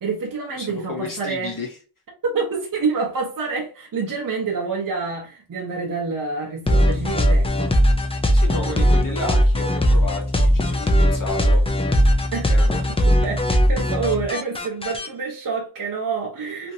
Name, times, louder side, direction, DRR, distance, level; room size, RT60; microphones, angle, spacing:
voice 1, 0.0-1.5 2.2-7.7 8.5-9.3 12.3-12.5 13.1-16.7, right 4 dB, 45° right, 0.8 m, -27 dB
voice 2, 0.5-1.8 8.3-11.9 12.5-13.2 16.6-16.7, left 3 dB, 45° left, 0.8 m, -32 dB
sound 1, 6.7-15.1, equal, 15° left, 0.3 m, -19 dB
2.9 x 2.6 x 2.6 m
wide cardioid pair, 140°, 47 cm